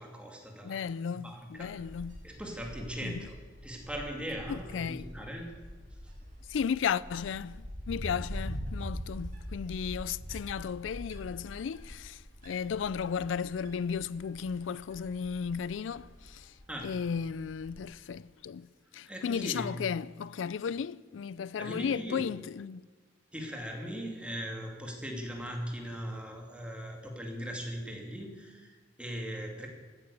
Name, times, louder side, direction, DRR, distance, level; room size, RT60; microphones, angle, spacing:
voice 1, 0.0-1.8 2.2-3.4 3.6-5.5 6.0-6.1 9.9-10.0 16.7-17.0 19.1-19.8 21.6-22.2 23.3-29.7, equal, 5° right, 2.5 m, -39 dB
voice 2, 0.6-2.2 3.0-3.3 4.5-5.1 6.5-16.5 16.8-18.7 18.9-22.8, left 7 dB, 90° left, 0.4 m, -35 dB
Wind, 1.6-17.8, equal, 45° right, 6.5 m, -44 dB
15.0 x 9.9 x 8.5 m
head